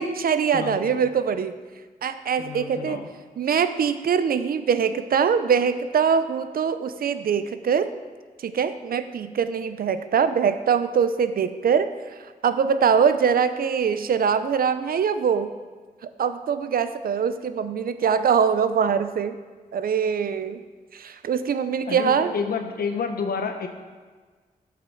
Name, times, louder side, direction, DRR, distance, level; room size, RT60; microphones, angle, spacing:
voice 1, 0.0-1.5 2.0-3.0 3.4-7.9 8.4-11.9 12.4-15.5 16.2-19.4 19.7-20.6 20.9-22.3, right 7 dB, 75° right, 11 dB, 0.5 m, -23 dB
voice 2, 0.5-1.1 2.4-3.1 21.9-23.7, left 5 dB, 80° left, 6 dB, 0.9 m, -30 dB
9.1 x 5.8 x 6.4 m, 1.4 s
wide cardioid pair, 95°, 15 cm